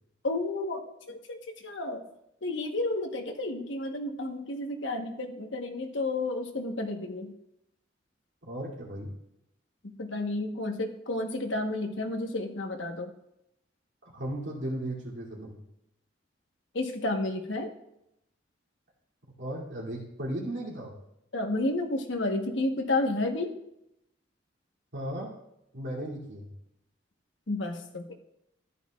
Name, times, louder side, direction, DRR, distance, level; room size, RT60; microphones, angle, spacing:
voice 1, 0.2-0.8 1.1-2.0 2.4-7.3 10.0-13.1 16.7-17.7 21.3-23.5 27.5-28.1, left 2 dB, 75° left, 3 dB, 1.1 m, -31 dB
voice 2, 8.4-9.1 14.0-15.6 19.4-21.0 24.9-25.3 25.7-26.5, right 1 dB, 70° right, -3 dB, 2.6 m, -36 dB
14.0 x 9.5 x 2.3 m, 0.82 s
head